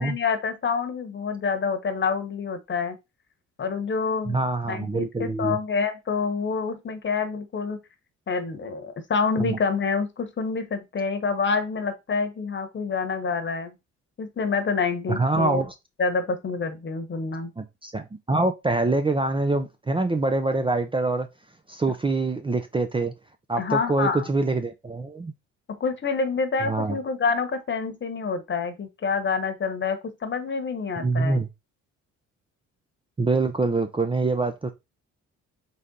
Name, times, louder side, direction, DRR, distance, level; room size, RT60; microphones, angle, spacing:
voice 1, 0.0-3.0 3.6-4.4 4.7-7.8 8.3-13.7 14.2-15.6 16.0-17.5 23.6-24.3 25.7-31.4, left 5 dB, 40° left, 1.1 m, -27 dB
voice 2, 4.3-5.6 9.4-9.6 15.1-15.7 17.6-21.3 21.7-23.1 23.5-25.3 26.6-27.0 31.0-31.5 33.2-34.7, right 3 dB, 15° right, 0.5 m, -25 dB
4.1 x 3.4 x 3.8 m
cardioid pair, 90°, 30 cm